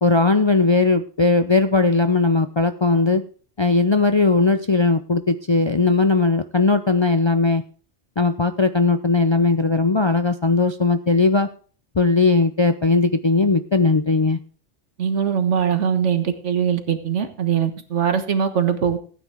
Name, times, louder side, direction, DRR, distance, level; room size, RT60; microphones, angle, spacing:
voice 1, 0.0-3.2 3.6-7.6 8.2-11.5 12.0-14.4, left 3 dB, 40° left, 9 dB, 0.4 m, -18 dB
voice 2, 15.0-19.0, right 8 dB, 85° right, 8 dB, 1.7 m, -21 dB
15.0 x 9.4 x 3.5 m, 0.41 s
omnidirectional pair, 1.2 m